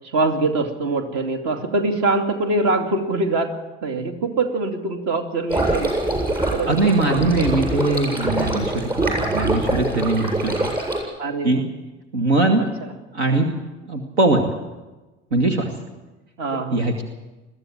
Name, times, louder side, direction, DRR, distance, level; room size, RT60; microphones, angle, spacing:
voice 1, 0.1-3.5 3.8-5.9 6.5-6.7 7.0-7.5 11.2-11.7 12.8-12.9 16.4-16.9, right 2 dB, 45° right, 6 dB, 2.6 m, -23 dB
sound 1, 5.5-11.0, right 1 dB, 15° right, 7.8 m, -24 dB
voice 2, 6.7-10.7 11.4-11.6 12.1-12.6 13.1-13.5 13.9-14.5 15.3-15.7 16.7-17.0, right 2 dB, 70° right, 5 dB, 2.0 m, -21 dB
21.5 x 14.5 x 8.8 m, 1.1 s
figure-of-eight pair, 70°, 34 cm